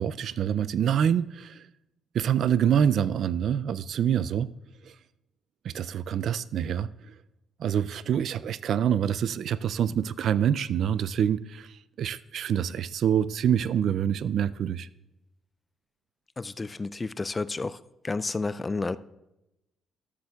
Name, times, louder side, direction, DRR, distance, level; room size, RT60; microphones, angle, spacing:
voice 1, 0.0-1.7 2.1-4.5 4.9-5.0 5.6-6.9 7.6-14.9, right 9 dB, 65° right, 0.3 m, -26 dB
voice 2, 16.4-17.8 18.0-19.0, left 3 dB, 25° left, 0.3 m, -31 dB
13.0 x 12.0 x 2.3 m
cardioid pair, 90°, 0 cm